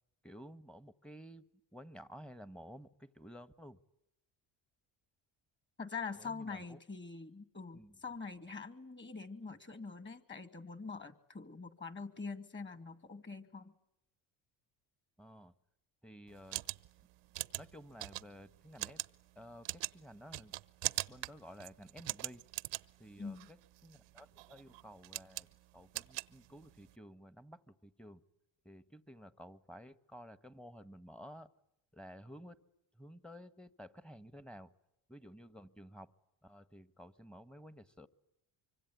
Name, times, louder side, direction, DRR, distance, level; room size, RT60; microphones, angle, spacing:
voice 1, 0.2-1.4 1.7-3.8 6.2-6.8 7.7-8.0 15.2-15.5 16.0-16.6 17.6-19.0 19.3-20.5 21.1-22.4 23.0-23.6 23.8-28.2 28.6-31.5 31.9-32.6 32.9-34.7 35.1-36.1 36.4-38.1, equal, ahead, 13 dB, 1.3 m, -53 dB
voice 2, 5.8-13.7 23.2-23.5, left 4 dB, 25° left, 10 dB, 2.4 m, -44 dB
sound 1, 16.3-26.9, right 18 dB, 65° right, 1.0 m, -43 dB
25.0 x 25.0 x 9.4 m, 0.82 s
supercardioid pair, 85°, 47 cm